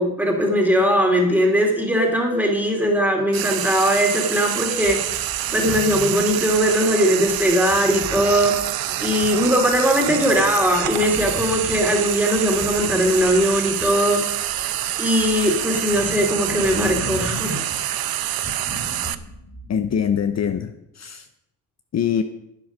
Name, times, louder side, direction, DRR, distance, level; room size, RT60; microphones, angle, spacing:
voice 1, 0.0-5.2 5.5-8.6 9.0-14.2 15.0-17.6, equal, 5° right, 1 dB, 2.6 m, -20 dB
Frying (food), 3.3-19.1, right 12 dB, 75° right, 0.7 m, -26 dB
sound 1, 4.8-20.5, left 2 dB, 30° left, 2.7 m, -37 dB
voice 2, 19.7-21.3 21.9-22.2, left 8 dB, 45° left, 8 dB, 0.7 m, -23 dB
10.5 x 9.3 x 6.1 m, 0.85 s
cardioid pair, 120°, 36 cm